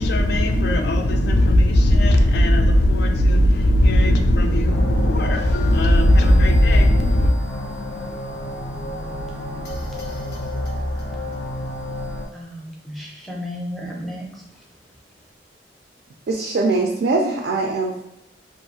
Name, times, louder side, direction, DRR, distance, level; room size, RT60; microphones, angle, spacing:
voice 1, 0.0-7.3, left 1 dB, 60° left, 0.4 m, -16 dB
sound 1, 4.7-12.3, left 1 dB, 85° left, 0.7 m, -30 dB
voice 2, 12.3-14.4, equal, ahead, 0.5 m, -33 dB
voice 3, 16.3-18.0, right 3 dB, 60° right, 0.3 m, -22 dB
2.5 x 2.3 x 2.8 m
head